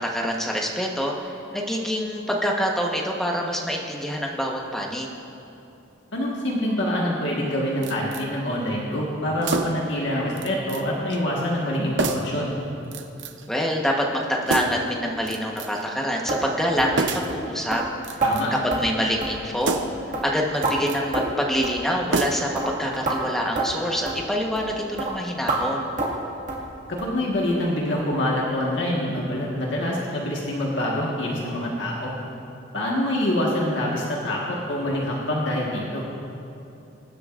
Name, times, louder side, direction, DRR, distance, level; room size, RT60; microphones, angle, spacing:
voice 1, 0.0-5.1 13.5-17.8 18.6-19.8 20.2-25.9, equal, ahead, -1 dB, 1.1 m, -26 dB
voice 2, 6.1-12.5 18.2-18.5 26.9-32.1 32.7-36.0, left 1 dB, 70° left, -3 dB, 1.5 m, -25 dB
sound 1, 7.8-8.3 9.4-9.9 10.4-10.8 11.1-11.2 12.0-12.4 12.9-13.5 14.5-14.9 15.3-15.9 17.0-17.4 18.0-18.6 19.6-20.1 20.5-21.0 22.1-22.6 22.9-23.0, right 3 dB, 65° right, 0.7 m, -28 dB
sound 2, 16.3-16.4 16.8-17.0 17.3-17.4 17.7-17.8 18.2-18.3 18.7-18.8 19.2-19.4 19.7-19.9 20.1-20.7 21.1-21.4 21.6-21.8 22.1-22.3 22.6-22.7 23.1-23.2 23.6-23.7 24.1-24.2 24.6-24.7 25.0-25.1 25.5-25.6 26.0-26.2 26.5-26.7 27.0-27.1 27.5-27.6 28.0-28.1 28.5-28.6, right 3 dB, 40° right, 2.0 m, -27 dB
22.5 x 10.5 x 2.5 m, 2.7 s
head